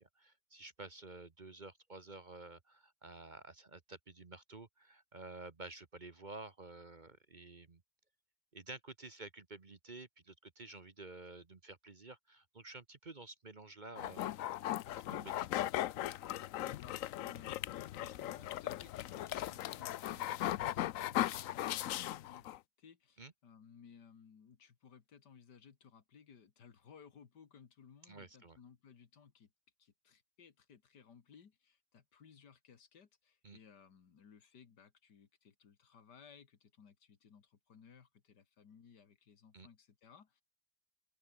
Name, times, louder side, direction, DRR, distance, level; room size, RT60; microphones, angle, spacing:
voice 1, 0.0-7.8 8.5-14.4 14.9-15.7 23.2-23.3 28.1-28.6 33.4-33.6 39.5-39.7, right 2 dB, 30° right, 1.2 m, -51 dB
sound 1, 14.0-22.6, left 13 dB, 65° left, 0.9 m, -38 dB
voice 2, 16.6-29.5 29.8-40.4, left 7 dB, 90° left, 2.4 m, -60 dB
open air
omnidirectional pair, 1.7 m